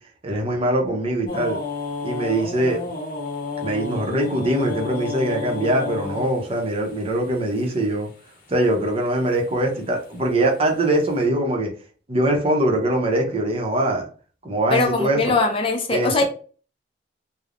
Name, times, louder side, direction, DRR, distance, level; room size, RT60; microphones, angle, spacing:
voice 1, 0.2-1.6 2.0-2.8 3.6-8.1 8.5-11.7 12.1-14.1 14.4-15.3 15.9-16.2, right 1 dB, 35° right, 0.6 m, -22 dB
sound 1, 1.3-8.3 9.0-9.5 9.8-11.0, left 3 dB, 50° left, 0.8 m, -32 dB
voice 2, 14.7-16.2, left 3 dB, 30° left, 0.4 m, -21 dB
3.1 x 2.0 x 2.4 m
head